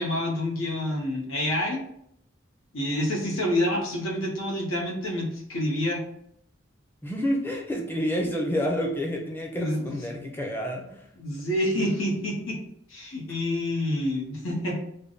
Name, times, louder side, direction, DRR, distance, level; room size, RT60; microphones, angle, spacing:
voice 1, 0.0-1.8 2.7-6.0 9.6-9.9 11.2-12.6 12.9-14.8, left 1 dB, 90° left, -1 dB, 0.9 m, -28 dB
voice 2, 7.0-11.0, equal, 10° left, 0 dB, 0.5 m, -29 dB
3.3 x 2.1 x 3.8 m, 0.71 s
head